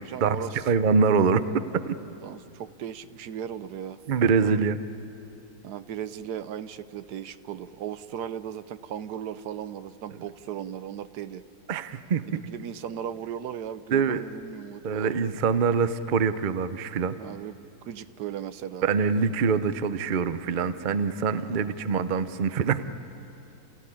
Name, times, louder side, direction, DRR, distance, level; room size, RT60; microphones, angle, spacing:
voice 1, 0.0-0.6 2.2-4.0 4.4-4.6 5.6-11.4 12.3-15.2 17.2-18.9 21.3-21.7, right 9 dB, 70° right, 13 dB, 1.2 m, -37 dB
voice 2, 0.7-2.0 4.1-4.8 11.7-12.4 13.9-14.2 14.8-17.2 18.8-23.0, right 5 dB, 90° right, 12 dB, 0.4 m, -24 dB
29.0 x 15.0 x 10.0 m, 2.8 s
omnidirectional pair, 1.9 m